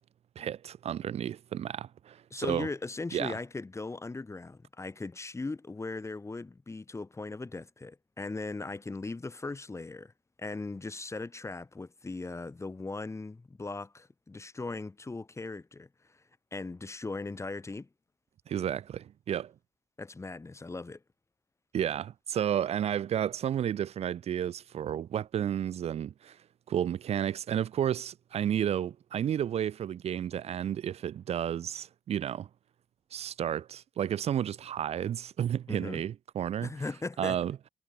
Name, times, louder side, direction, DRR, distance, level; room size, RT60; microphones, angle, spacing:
voice 1, 0.4-2.7 3.1-3.4 18.5-19.5 21.7-26.4 26.7-32.5 33.1-36.7 37.2-37.6, right 10 dB, 55° right, 0.8 m, -32 dB
voice 2, 2.3-10.1 10.4-16.2 16.5-17.9 20.0-21.0 35.7-36.0 36.6-37.4, left 3 dB, 25° left, 2.1 m, -38 dB
supercardioid pair, 55°, 13 cm